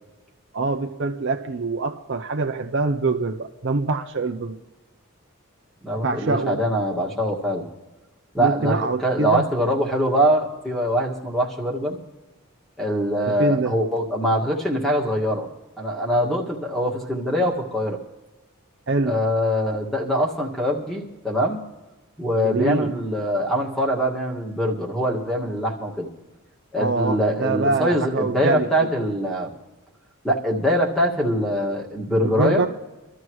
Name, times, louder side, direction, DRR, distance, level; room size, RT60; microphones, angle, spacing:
voice 1, 0.5-4.6 6.0-6.6 8.4-9.5 13.3-13.8 18.9-19.2 22.4-22.9 26.7-28.7 32.2-32.7, right 3 dB, 55° right, 0.7 m, -24 dB
voice 2, 5.8-7.6 8.3-12.0 12.8-15.5 15.8-18.0 19.0-21.6 22.2-26.1 26.7-29.5 30.2-32.6, equal, ahead, 2.0 m, -23 dB
25.0 x 13.5 x 3.2 m
head